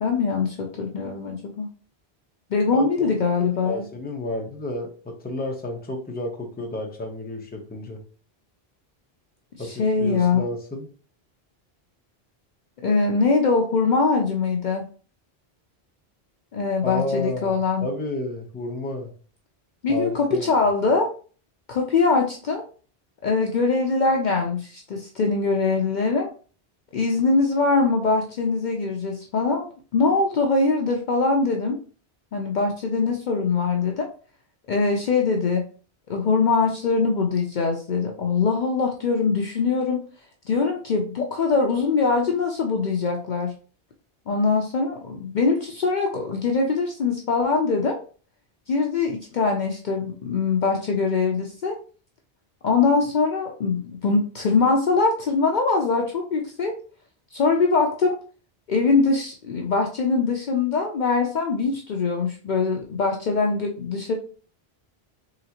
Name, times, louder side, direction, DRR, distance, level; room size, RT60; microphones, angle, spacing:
voice 1, 0.0-1.7 2.5-3.8 9.6-10.4 12.8-14.8 16.5-17.9 19.8-21.1 21.7-22.6 23.2-26.3 26.9-31.8 32.3-34.1 34.7-35.6 36.1-40.0 40.5-43.5 44.3-48.0 48.7-51.8 52.6-56.8 57.3-58.1 58.7-64.1, left 4 dB, 55° left, 2 dB, 0.6 m, -22 dB
voice 2, 2.7-3.1 3.4-8.0 9.6-10.9 16.8-19.1 19.9-20.5, left 1 dB, 10° left, 1 dB, 0.7 m, -31 dB
3.9 x 3.3 x 2.9 m, 0.40 s
omnidirectional pair, 1.1 m